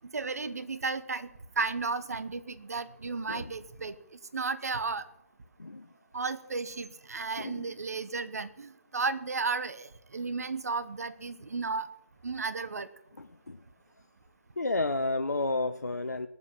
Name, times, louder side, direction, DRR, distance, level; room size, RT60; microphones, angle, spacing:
voice 1, 0.1-1.3 1.6-4.0 4.3-5.0 6.1-11.9 12.2-12.9, right 4 dB, 70° right, 13 dB, 1.1 m, -33 dB
voice 2, 13.2-13.6 14.6-16.3, left 2 dB, 90° left, 9 dB, 0.7 m, -31 dB
19.0 x 7.3 x 6.0 m, 0.87 s
figure-of-eight pair, 140°, 9 cm